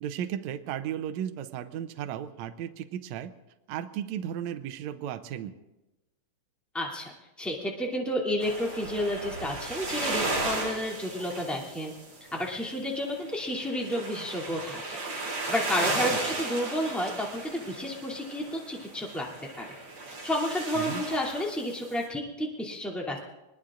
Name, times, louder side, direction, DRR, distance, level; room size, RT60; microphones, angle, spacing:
voice 1, 0.0-3.3 3.7-5.5 20.7-21.0, right 10 dB, 85° right, 9 dB, 1.6 m, -35 dB
voice 2, 6.7-11.9 12.3-19.3 19.6-19.7 20.2-23.2, equal, ahead, -2 dB, 1.9 m, -31 dB
sound 1, 8.4-12.8 13.0-22.0, right 2 dB, 50° right, 8.1 m, -35 dB
25.0 x 21.0 x 2.5 m, 1.0 s
omnidirectional pair, 4.2 m